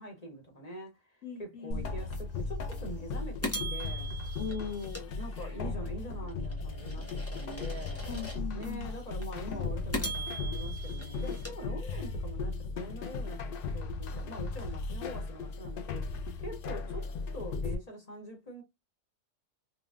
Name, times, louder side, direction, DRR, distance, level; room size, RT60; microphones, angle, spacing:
voice 1, 0.0-4.2 5.2-8.1 8.5-17.1 17.3-18.6, equal, 30° left, 1.1 m, -44 dB
voice 2, 1.2-1.8 4.4-5.1 8.1-8.9, left 6 dB, 80° left, 1.2 m, -39 dB
sound 1, 1.7-17.8, left 3 dB, 60° left, 0.6 m, -37 dB
sound 2, 2.1-2.2 2.7-2.8 3.4-5.8 6.3-8.7 9.2-9.3 9.9-12.3, equal, 15° left, 0.6 m, -40 dB
3.7 x 2.2 x 2.3 m
omnidirectional pair, 1.3 m